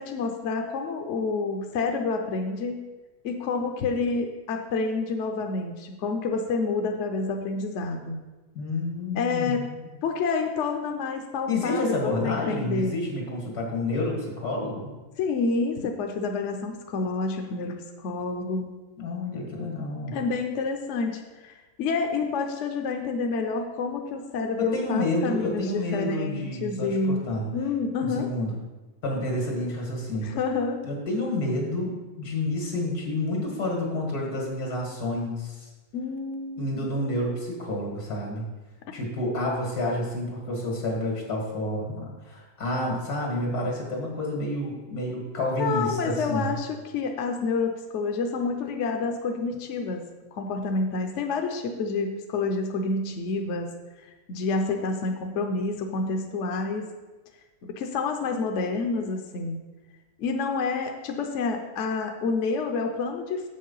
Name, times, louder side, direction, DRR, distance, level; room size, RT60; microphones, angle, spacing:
voice 1, 0.0-2.8 3.2-8.2 9.1-9.6 10.0-13.0 15.2-18.7 20.1-21.5 21.8-27.3 27.5-28.3 30.2-30.8 35.9-36.7 45.6-50.0 50.3-53.7 54.3-56.9 57.8-59.6 60.2-63.5, left 4 dB, 60° left, 4 dB, 0.9 m, -28 dB
voice 2, 8.5-9.7 11.5-14.9 19.0-20.2 24.6-27.5 28.0-28.6 29.0-30.3 30.8-35.7 36.6-38.5 38.9-46.6, left 1 dB, 85° left, -1 dB, 2.3 m, -29 dB
7.3 x 5.5 x 5.4 m, 1.2 s
omnidirectional pair, 1.6 m